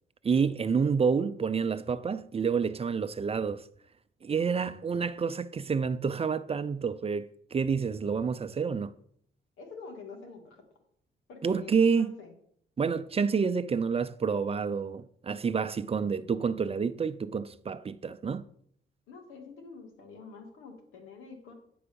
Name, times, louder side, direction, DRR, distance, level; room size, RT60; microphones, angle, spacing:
voice 1, 0.2-3.6 4.2-8.9 11.4-12.1 12.8-18.5, right 5 dB, 30° right, 0.5 m, -28 dB
voice 2, 9.6-10.6 11.3-12.3 15.8-16.4 19.1-21.5, left 4 dB, 85° left, 2.3 m, -47 dB
9.8 x 4.7 x 6.9 m
cardioid pair, 90°, 20 cm